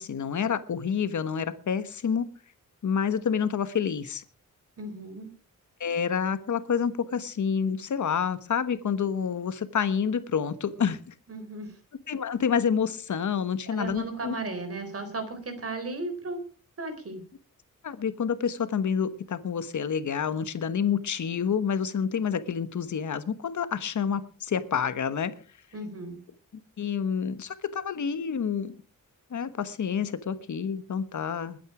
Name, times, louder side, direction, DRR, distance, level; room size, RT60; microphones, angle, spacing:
voice 1, 0.0-2.3 2.8-4.2 5.8-11.1 12.1-14.4 17.8-25.3 26.8-28.8 29.3-31.6, left 7 dB, 60° left, 13 dB, 1.3 m, -28 dB
voice 2, 4.8-5.3 11.3-11.7 13.7-16.4 16.8-17.2 25.7-26.2, right 2 dB, 45° right, 7 dB, 4.0 m, -35 dB
20.5 x 9.3 x 4.9 m, 0.39 s
wide cardioid pair, 150°, 33 cm